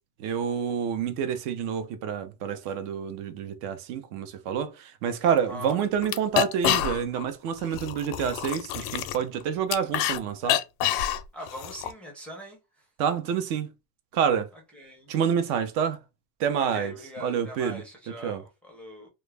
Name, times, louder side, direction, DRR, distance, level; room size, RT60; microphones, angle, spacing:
voice 1, 0.2-10.6 13.0-13.7 14.1-14.5 15.1-16.0 16.4-16.9 17.2-17.8 18.2-18.4, right 7 dB, 65° right, 0.6 m, -28 dB
voice 2, 5.2-5.8 11.3-12.8 14.5-15.1 16.5-19.1, equal, 5° left, 0.4 m, -42 dB
sound 1, 5.3-5.4 5.7-5.8 6.0-7.3 7.6-10.2 10.4-11.9, left 11 dB, 75° left, 0.6 m, -27 dB
2.3 x 2.0 x 3.2 m
supercardioid pair, 135°, 49 cm